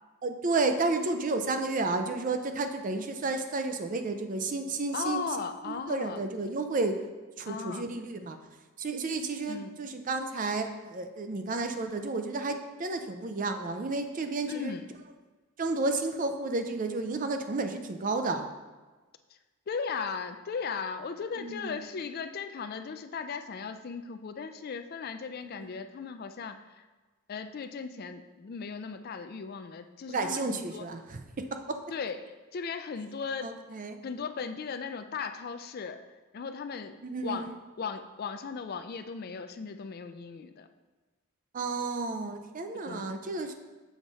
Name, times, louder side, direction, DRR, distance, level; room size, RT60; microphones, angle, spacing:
voice 1, 0.2-5.2 5.6-7.0 7.4-8.4 8.8-14.8 15.6-18.5 21.4-21.8 25.6-25.7 30.1-31.8 33.4-34.0 37.0-37.5 41.5-43.5, right 3 dB, 35° right, 6 dB, 0.5 m, -32 dB
voice 2, 4.9-6.2 7.5-7.9 9.5-9.8 14.5-14.9 19.7-26.8 27.3-30.9 31.9-33.5 34.0-36.0 36.3-37.0 37.2-37.5 37.8-40.7 42.7-43.1, left 5 dB, 45° left, 8 dB, 0.3 m, -37 dB
7.2 x 4.8 x 4.0 m, 1.3 s
head